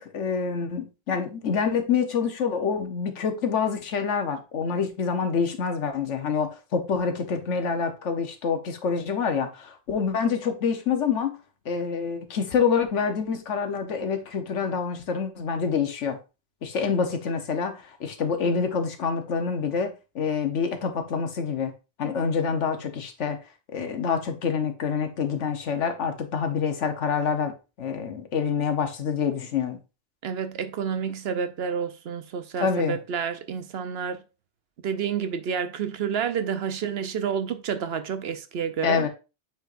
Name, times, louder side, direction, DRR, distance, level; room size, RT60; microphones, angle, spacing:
voice 1, 0.0-11.4 11.6-16.2 16.6-21.7 22.0-23.4 23.7-29.8 32.6-33.0 38.8-39.1, left 6 dB, 90° left, 1.3 m, -27 dB
voice 2, 30.2-34.2 34.8-39.1, right 7 dB, 65° right, 0.9 m, -29 dB
8.4 x 4.6 x 2.5 m
omnidirectional pair, 1.2 m